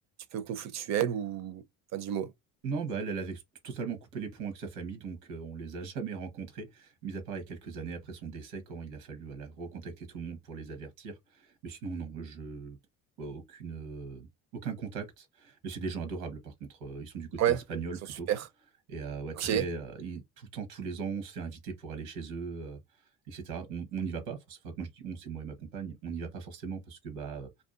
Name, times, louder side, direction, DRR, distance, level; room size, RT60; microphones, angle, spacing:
voice 1, 0.3-1.6 1.9-2.3 17.4-17.6 18.3-18.5 19.4-19.6, right 10 dB, 50° right, 0.6 m, -29 dB
voice 2, 2.6-12.8 13.2-18.3 18.9-27.5, right 5 dB, 80° right, 1.0 m, -39 dB
2.7 x 2.3 x 2.4 m
supercardioid pair, 90°, 37 cm